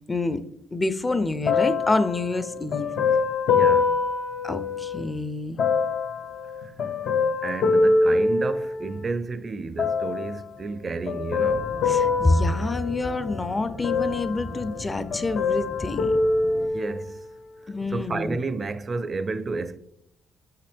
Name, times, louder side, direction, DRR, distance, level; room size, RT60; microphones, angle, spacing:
voice 1, 0.1-0.4 0.7-2.9 4.4-5.6 11.9-16.2 17.7-18.4, left 2 dB, 20° left, 0.5 m, -27 dB
sound 1, 1.5-5.1 5.6-9.1 9.8-10.4 11.1-13.4 13.8-14.9 15.1-17.2 17.8-17.9, left 4 dB, 65° left, 0.6 m, -24 dB
voice 2, 3.5-3.9 7.4-11.7 16.7-17.2 17.9-19.8, right 4 dB, 35° right, 0.4 m, -31 dB
sound 2, 11.4-16.7, left 2 dB, 40° left, 0.9 m, -39 dB
5.8 x 5.6 x 3.5 m
cardioid pair, 90°, 0 cm